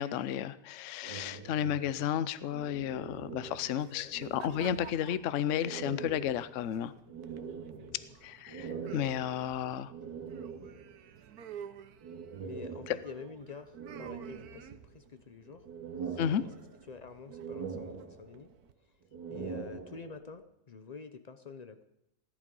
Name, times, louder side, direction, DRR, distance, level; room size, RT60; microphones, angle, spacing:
voice 1, 0.0-6.9 8.2-9.9 16.2-16.4, left 10 dB, 60° left, 15 dB, 0.9 m, -33 dB
sound 1, 1.0-3.8 4.1-5.2 5.6-11.0 12.0-13.3 13.7-15.0 15.4-16.9 17.3-18.6 19.0-20.3, right 6 dB, 85° right, 2.4 m, -43 dB
sound 2, 3.1-18.7, right 8 dB, 65° right, 1.3 m, -53 dB
voice 2, 12.4-15.7 16.0-16.5 16.9-18.5 19.3-21.8, left 5 dB, 85° left, 9 dB, 0.3 m, -48 dB
17.5 x 11.5 x 5.4 m, 0.84 s
omnidirectional pair, 1.9 m